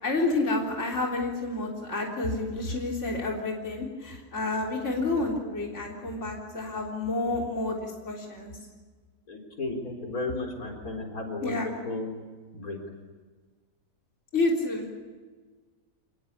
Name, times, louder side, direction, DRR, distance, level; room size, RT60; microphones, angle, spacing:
voice 1, 0.0-8.5 11.4-11.7 14.3-14.9, left 2 dB, 50° left, -1 dB, 3.9 m, -29 dB
voice 2, 9.3-12.1 12.5-12.8, left 2 dB, 70° left, 3 dB, 4.5 m, -34 dB
28.0 x 20.5 x 8.7 m, 1.4 s
omnidirectional pair, 1.6 m